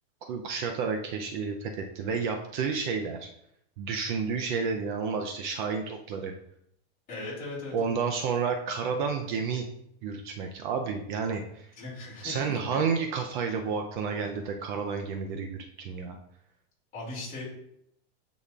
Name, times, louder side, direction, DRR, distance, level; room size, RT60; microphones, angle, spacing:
voice 1, 0.3-3.3 3.8-6.3 7.7-9.6 10.0-11.7 12.2-16.2, right 5 dB, 45° right, 4 dB, 0.6 m, -31 dB
voice 2, 7.1-7.9 11.8-12.8 16.9-17.5, left 2 dB, 25° left, -5 dB, 2.4 m, -38 dB
9.7 x 4.2 x 2.4 m, 0.75 s
supercardioid pair, 170°, 34 cm